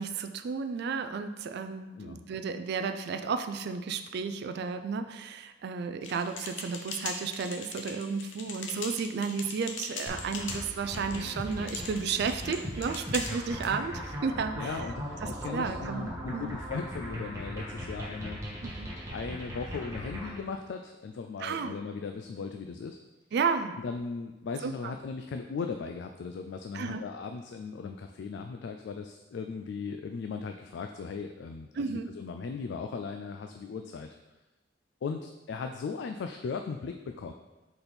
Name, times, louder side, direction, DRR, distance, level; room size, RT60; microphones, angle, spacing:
voice 1, 0.0-14.9 15.2-16.5 18.6-18.9 21.4-21.7 23.3-23.8 24.6-24.9 26.7-27.0 31.8-32.1, right 5 dB, 60° right, 9 dB, 0.3 m, -33 dB
sound 1, 6.0-13.7, left 4 dB, 85° left, 0.8 m, -41 dB
sound 2, 10.1-20.4, equal, 15° right, 1.4 m, -39 dB
voice 2, 14.5-18.8 19.1-23.0 23.8-34.1 35.0-37.3, left 5 dB, 65° left, 5 dB, 0.3 m, -38 dB
4.3 x 4.2 x 5.1 m, 1.1 s
head